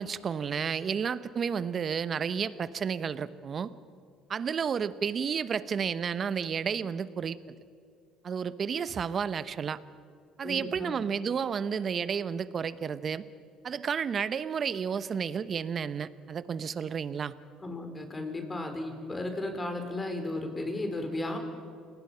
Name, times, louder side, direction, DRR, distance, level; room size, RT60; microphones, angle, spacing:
voice 1, 0.0-3.7 4.3-7.4 8.2-9.8 10.4-13.2 13.6-17.3, right 7 dB, 45° right, 15 dB, 0.9 m, -31 dB
voice 2, 10.4-10.9 17.6-21.4, left 2 dB, 20° left, 5 dB, 4.4 m, -34 dB
29.0 x 19.0 x 5.8 m, 2.4 s
hypercardioid pair, 70°, 0 cm